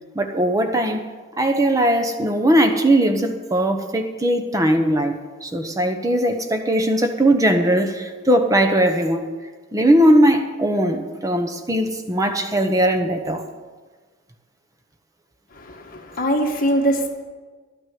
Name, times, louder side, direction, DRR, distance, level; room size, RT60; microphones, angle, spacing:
voice 1, 0.1-1.1 1.4-9.3 9.7-13.4, right 1 dB, 15° right, 6 dB, 0.9 m, -19 dB
voice 2, 15.5-17.1, right 1 dB, 45° left, 2 dB, 1.5 m, -22 dB
11.5 x 6.2 x 9.3 m, 1.4 s
head